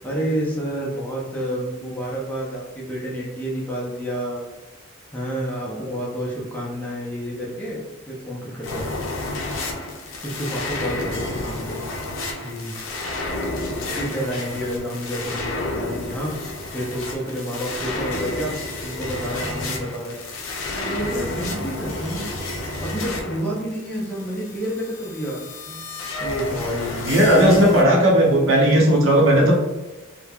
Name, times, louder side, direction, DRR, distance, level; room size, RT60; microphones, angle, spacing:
voice 1, 0.0-4.4 5.1-7.8 8.1-8.9 10.2-11.8 12.4-12.8 13.9-16.3 16.7-18.6 18.8-20.2 20.7-22.3 22.8-25.8 26.2-27.0 27.3-27.6, equal, 10° left, -5 dB, 0.5 m, -29 dB
sound 1, 8.6-27.8, left 2 dB, 70° left, 0.5 m, -30 dB
voice 2, 27.0-29.6, equal, 65° right, -2 dB, 0.7 m, -16 dB
3.0 x 2.1 x 2.3 m, 1.1 s
head